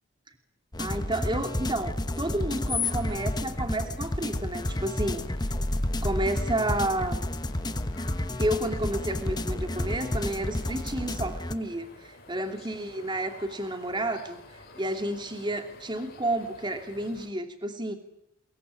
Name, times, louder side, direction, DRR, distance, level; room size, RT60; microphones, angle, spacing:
sound 1, 0.7-11.5, left 1 dB, 20° left, 1.1 m, -30 dB
voice 1, 0.8-5.3 6.0-7.3 8.4-14.4 14.7-17.9, right 1 dB, 20° right, 6 dB, 2.9 m, -31 dB
sound 2, 2.8-17.3, left 2 dB, 50° left, 5.0 m, -50 dB
22.5 x 22.0 x 9.9 m, 0.83 s
head